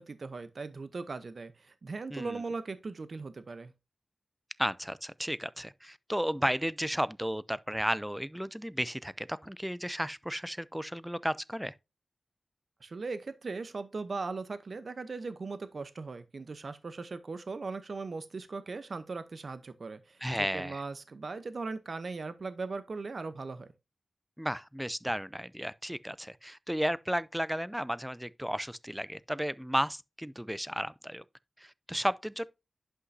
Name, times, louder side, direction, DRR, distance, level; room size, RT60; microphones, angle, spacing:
voice 1, 0.0-3.7 12.8-23.7, right 4 dB, 70° right, 0.8 m, -39 dB
voice 2, 2.1-2.4 4.6-11.7 20.2-20.8 24.4-31.2 31.6-32.5, equal, 5° right, 0.5 m, -33 dB
11.0 x 5.6 x 2.7 m
cardioid pair, 45°, 0 cm